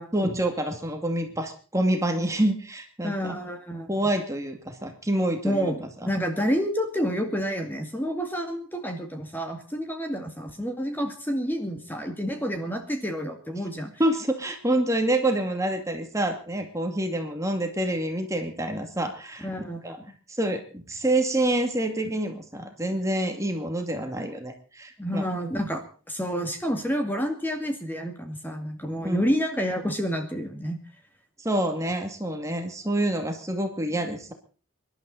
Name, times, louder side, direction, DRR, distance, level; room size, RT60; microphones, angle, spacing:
voice 1, 0.1-3.3 3.9-5.7 6.0-6.1 14.0-19.5 19.8-20.0 20.3-25.2 29.0-29.2 31.4-34.3, right 1 dB, 15° right, 5 dB, 2.3 m, -27 dB
voice 2, 3.0-3.9 5.4-5.8 6.1-13.9 19.4-19.8 25.0-30.8, equal, 10° left, 4 dB, 2.2 m, -29 dB
25.0 x 12.0 x 4.1 m, 0.38 s
head